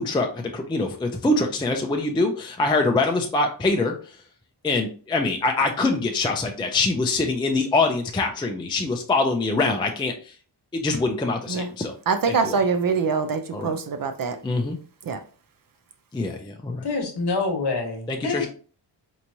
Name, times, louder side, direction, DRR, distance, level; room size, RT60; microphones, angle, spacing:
voice 1, 0.0-3.9 4.6-10.3 10.7-11.9 12.3-12.6 13.5-13.7 14.4-14.8 16.1-16.9 18.1-18.5, left 3 dB, 10° left, 0.3 m, -24 dB
voice 2, 12.1-14.4 15.0-15.2, right 5 dB, 50° right, 0.4 m, -24 dB
voice 3, 16.8-18.5, left 3 dB, 60° left, 1.1 m, -26 dB
4.5 x 3.0 x 2.6 m
wide cardioid pair, 180°, 44 cm